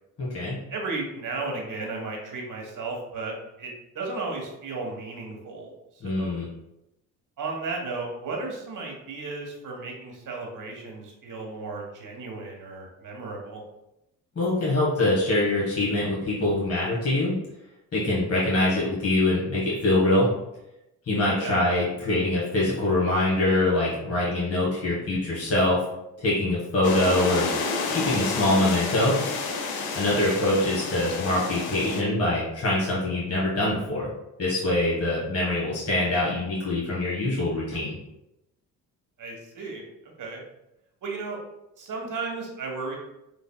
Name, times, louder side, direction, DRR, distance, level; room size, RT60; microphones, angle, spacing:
voice 1, 0.2-0.6 6.0-6.5 14.3-17.3 17.9-20.3 21.1-25.8 26.2-27.5 27.9-29.2 29.9-34.1 34.4-38.0, left 2 dB, 35° left, -6 dB, 1.5 m, -24 dB
voice 2, 0.7-5.7 6.0-6.4 7.4-13.6 21.4-21.6 30.2-30.4 39.2-40.4 41.0-41.4 41.8-43.0, right 3 dB, 50° right, 1 dB, 1.2 m, -34 dB
sound 1, 26.8-32.0, left 4 dB, 65° left, 0.7 m, -30 dB
3.9 x 3.4 x 2.2 m, 0.89 s
supercardioid pair, 65°, 39 cm